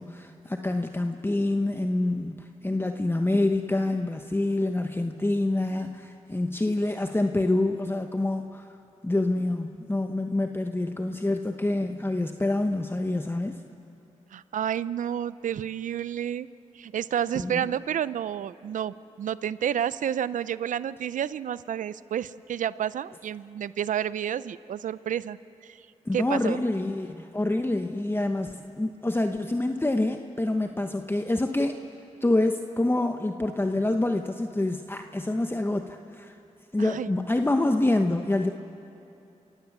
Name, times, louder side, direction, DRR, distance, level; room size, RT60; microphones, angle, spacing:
voice 1, 0.0-8.7 9.0-13.6 17.3-17.6 26.0-31.7 32.2-36.4 36.7-38.5, left 2 dB, 15° left, 6 dB, 1.0 m, -26 dB
voice 2, 14.3-16.5 16.7-25.4 25.6-25.8 26.1-26.6 36.8-37.1, right 9 dB, 80° right, 17 dB, 0.5 m, -30 dB
27.5 x 16.5 x 7.3 m, 2.7 s
cardioid pair, 45°, 13 cm